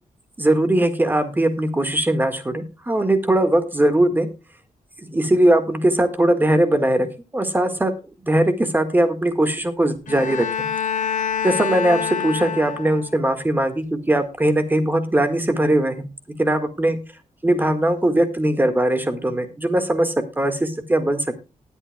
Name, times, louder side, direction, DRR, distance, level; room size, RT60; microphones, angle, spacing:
voice 1, 0.4-4.3 5.1-7.1 7.3-7.9 8.2-10.7 11.4-16.1 16.4-17.0 17.4-21.4, right 1 dB, 15° right, 9 dB, 1.7 m, -20 dB
Bowed string instrument, 10.1-13.3, left 7 dB, 70° left, 2.4 m, -26 dB
19.5 x 8.1 x 2.3 m, 0.30 s
wide cardioid pair, 130°, 14 cm